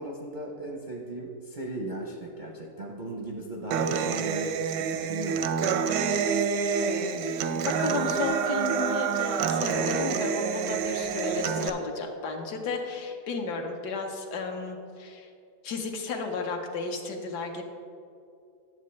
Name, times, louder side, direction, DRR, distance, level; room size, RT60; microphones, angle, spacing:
voice 1, 0.0-5.9 6.2-6.5, right 1 dB, 55° right, -1 dB, 0.5 m, -38 dB
Human voice / Acoustic guitar, 3.7-11.7, right 6 dB, 85° right, 1.2 m, -27 dB
voice 2, 7.6-15.3 15.6-17.6, left 4 dB, 75° left, 3 dB, 1.5 m, -33 dB
10.5 x 7.6 x 3.2 m, 2.5 s
omnidirectional pair, 1.8 m